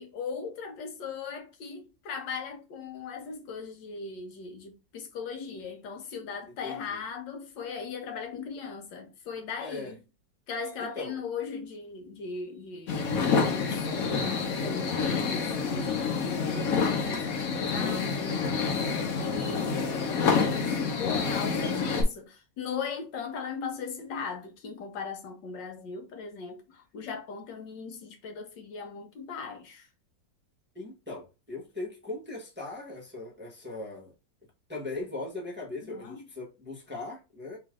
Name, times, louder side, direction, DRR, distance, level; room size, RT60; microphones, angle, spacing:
voice 1, 0.0-10.0 10.5-18.6 19.2-29.9 35.8-36.2, left 5 dB, 80° left, 1.5 m, -39 dB
voice 2, 6.5-7.0 9.6-9.9 10.8-11.2 17.5-18.0 21.0-21.4 30.7-34.1 34.7-37.6, left 2 dB, 10° right, 0.8 m, -39 dB
sound 1, 12.9-22.0, left 5 dB, 60° left, 1.2 m, -28 dB
3.1 x 2.9 x 3.6 m
omnidirectional pair, 2.0 m